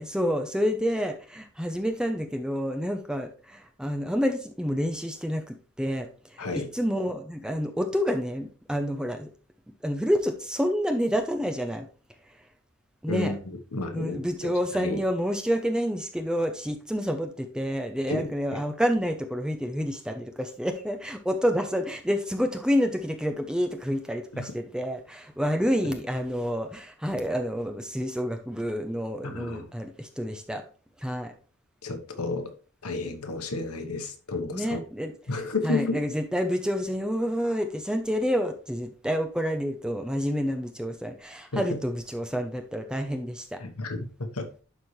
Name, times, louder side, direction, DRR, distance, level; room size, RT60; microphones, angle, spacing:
voice 1, 0.0-6.4 6.7-9.3 9.8-11.9 13.0-13.3 13.9-30.6 31.0-31.3 34.5-35.1 35.6-43.6, equal, 5° right, 5 dB, 0.7 m, -28 dB
voice 2, 6.4-6.7 13.1-15.0 18.1-18.2 18.5-18.6 24.3-24.5 29.2-29.7 31.8-32.5 32.8-34.8 35.3-36.0 41.5-41.8 43.6-44.5, left 3 dB, 90° left, 6 dB, 1.2 m, -32 dB
11.5 x 4.1 x 3.3 m, 0.37 s
head